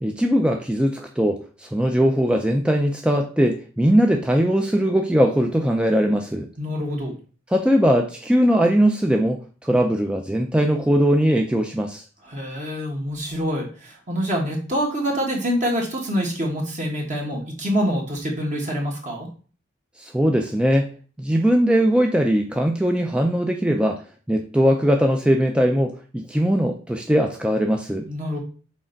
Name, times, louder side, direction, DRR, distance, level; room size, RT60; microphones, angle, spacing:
voice 1, 0.0-6.5 7.5-12.0 20.0-20.9 21.2-24.0 24.3-28.1, equal, 5° right, 3 dB, 0.4 m, -20 dB
voice 2, 6.6-7.1 12.2-19.3 28.1-28.4, equal, 40° right, -1 dB, 1.5 m, -26 dB
6.3 x 4.3 x 3.9 m, 0.39 s
head